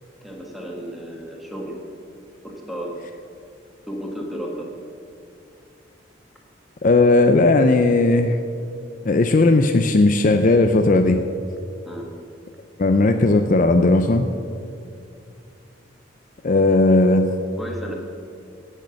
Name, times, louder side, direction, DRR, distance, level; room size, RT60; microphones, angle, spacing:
voice 1, 0.2-1.8 2.4-2.9 3.9-4.7 11.9-12.1 17.6-18.0, equal, ahead, -1 dB, 1.7 m, -33 dB
voice 2, 6.8-8.4 9.1-11.2 12.8-14.3 16.4-17.3, left 2 dB, 40° left, 7 dB, 0.5 m, -16 dB
17.0 x 6.5 x 6.4 m, 2.4 s
head